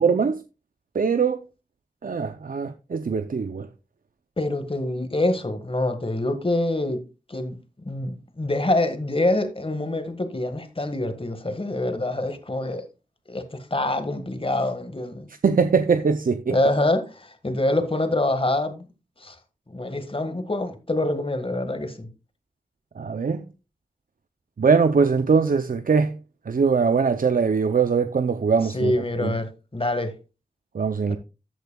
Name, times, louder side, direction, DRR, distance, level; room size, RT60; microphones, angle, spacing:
voice 1, 0.0-0.4 0.9-1.4 2.0-3.7 15.4-16.6 23.0-23.4 24.6-26.2 26.5-28.9 29.2-29.3 30.7-31.2, right 5 dB, 80° right, 0.5 m, -21 dB
voice 2, 4.4-7.0 7.3-12.9 13.3-15.3 16.5-18.9 19.2-19.4 19.7-22.1 28.7-30.1 31.1-31.2, left 1 dB, 40° left, 1.6 m, -25 dB
14.0 x 8.1 x 2.3 m
wide cardioid pair, 45°, 14 cm